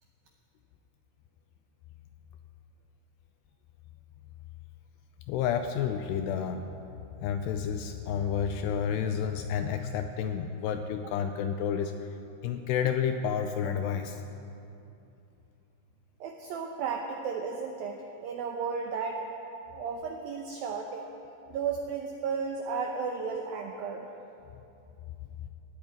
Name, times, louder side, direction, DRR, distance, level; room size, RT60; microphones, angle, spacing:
voice 1, 5.3-6.6 7.2-12.1 12.4-14.2, left 7 dB, 85° left, 7 dB, 2.5 m, -30 dB
voice 2, 16.2-19.3 19.7-21.1 21.5-24.1, right 5 dB, 85° right, 2 dB, 2.1 m, -34 dB
17.0 x 8.9 x 9.4 m, 2.8 s
omnidirectional pair, 5.3 m